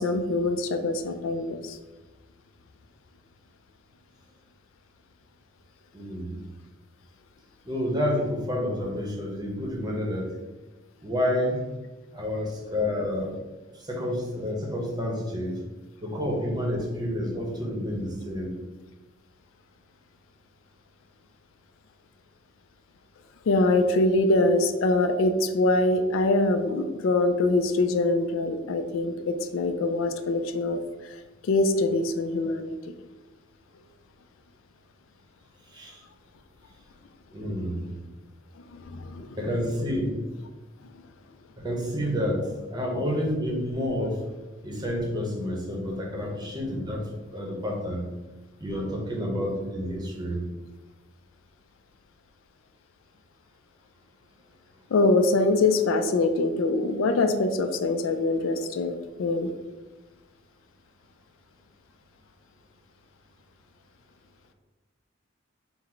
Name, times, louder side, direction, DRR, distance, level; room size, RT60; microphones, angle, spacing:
voice 1, 0.0-1.8 23.5-31.2 31.4-32.7 38.7-39.4 54.9-59.5, left 2 dB, 80° left, 8 dB, 0.4 m, -24 dB
voice 2, 5.9-6.4 7.6-10.3 11.0-11.6 12.1-13.3 13.7-15.6 16.0-18.5 35.7-36.0 37.3-37.9 39.4-40.2 41.6-44.2 44.6-48.1 48.6-50.4, left 1 dB, 20° right, -1 dB, 0.8 m, -29 dB
3.9 x 2.1 x 4.4 m, 1.2 s
head